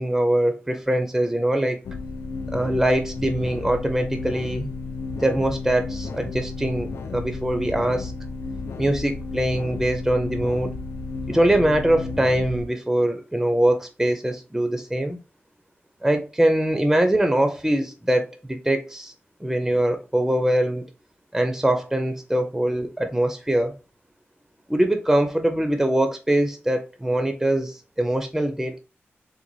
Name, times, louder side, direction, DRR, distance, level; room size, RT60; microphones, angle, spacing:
voice 1, 0.0-1.8 2.5-4.7 5.2-8.1 8.8-10.7 11.3-15.2 16.0-19.1 19.4-20.8 21.3-23.7 24.7-28.8, right 1 dB, 5° right, 0.4 m, -23 dB
sound 1, 1.8-12.7, left 3 dB, 80° left, 0.4 m, -33 dB
3.8 x 2.2 x 3.0 m
wide cardioid pair, 105°, 4 cm